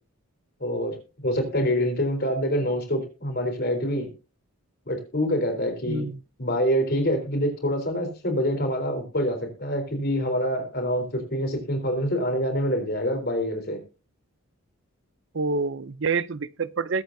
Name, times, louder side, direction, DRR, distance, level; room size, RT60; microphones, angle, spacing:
voice 1, 0.6-1.0 1.2-4.1 4.9-6.1 6.4-13.8, equal, 45° left, 3.9 m, -26 dB
voice 2, 5.9-6.2 15.3-17.0, right 4 dB, 55° right, 0.6 m, -27 dB
21.5 x 8.1 x 2.7 m
head